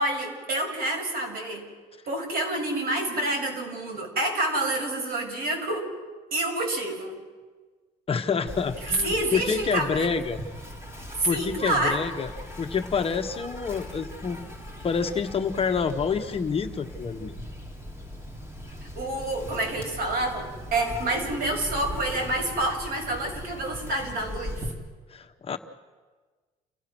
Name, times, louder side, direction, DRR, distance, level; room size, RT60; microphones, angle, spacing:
voice 1, 0.0-1.7 2.1-5.9 6.3-7.2 9.0-10.1 11.2-12.0 18.9-24.6, right 2 dB, 65° right, 2 dB, 6.7 m, -28 dB
voice 2, 8.1-10.4 11.2-12.3 12.6-14.4 14.8-17.3 25.1-25.6, left 5 dB, 35° left, 6 dB, 1.3 m, -27 dB
Insect, 8.5-24.7, left 1 dB, 15° right, 3.7 m, -39 dB
29.5 x 17.5 x 6.2 m, 1.4 s
cardioid pair, 110°, 17 cm